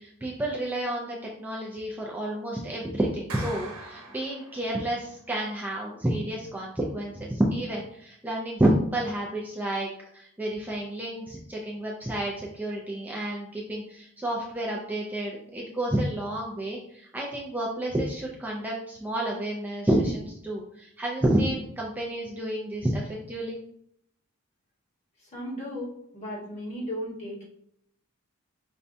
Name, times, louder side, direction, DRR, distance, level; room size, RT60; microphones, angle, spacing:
voice 1, 0.0-9.9 10.1-23.6, right 1 dB, 10° right, -4 dB, 0.4 m, -30 dB
Clapping, 3.3-4.9, right 2 dB, 70° right, 0.9 m, -41 dB
voice 2, 25.2-27.4, equal, 35° left, -4 dB, 1.3 m, -36 dB
5.3 x 2.2 x 2.6 m, 0.71 s
head